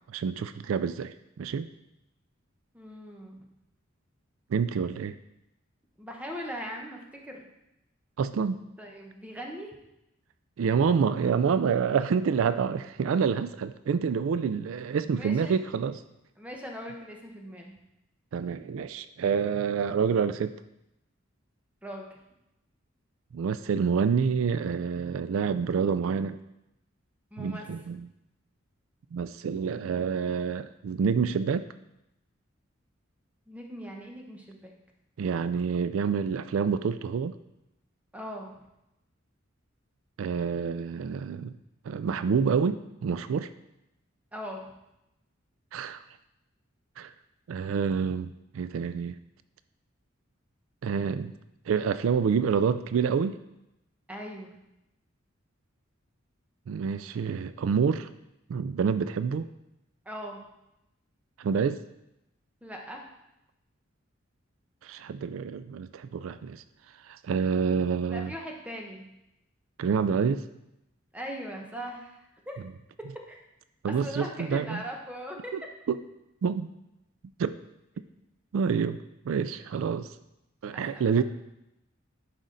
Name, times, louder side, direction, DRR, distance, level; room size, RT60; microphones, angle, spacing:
voice 1, 0.1-1.7 4.5-5.2 8.2-8.6 10.6-16.0 18.3-20.6 23.3-26.4 27.4-28.1 29.1-31.7 35.2-37.4 40.2-41.5 41.9-43.5 45.7-46.0 47.0-47.1 47.5-49.2 50.8-51.3 51.7-53.4 56.7-58.1 58.5-59.5 61.4-61.8 64.8-66.6 67.0-68.3 69.8-70.4 73.8-74.8 75.5-76.0 76.4-76.7 77.4-77.6 78.5-80.1 80.6-81.2, right 6 dB, 75° right, 13 dB, 0.3 m, -27 dB
voice 2, 2.7-3.5 6.0-7.4 8.8-9.8 15.1-15.6 16.4-17.7 21.8-22.2 27.3-27.7 33.5-34.7 38.1-38.6 44.3-44.7 54.1-54.5 60.0-60.4 62.6-63.0 68.1-69.1 71.1-72.6 73.0-73.4 73.9-75.5 80.7-81.2, equal, 5° right, 1 dB, 1.1 m, -40 dB
11.5 x 5.0 x 3.9 m, 0.89 s
head